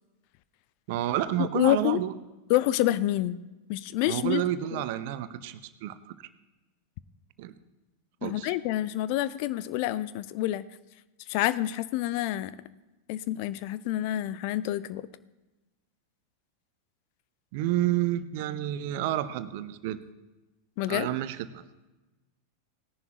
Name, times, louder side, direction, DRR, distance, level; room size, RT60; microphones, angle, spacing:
voice 1, 0.9-2.1 4.1-6.0 7.4-7.5 8.2-8.5 17.5-20.0 20.9-21.6, right 13 dB, 50° right, 13 dB, 0.7 m, -30 dB
voice 2, 1.4-2.0 2.5-3.4 3.7-4.4 4.7-4.8 8.2-10.7 11.3-12.5 13.1-15.1 20.8-21.2, left 14 dB, 45° left, 16 dB, 0.4 m, -27 dB
18.5 x 10.5 x 3.0 m, 1.1 s
figure-of-eight pair, 90°, 0 cm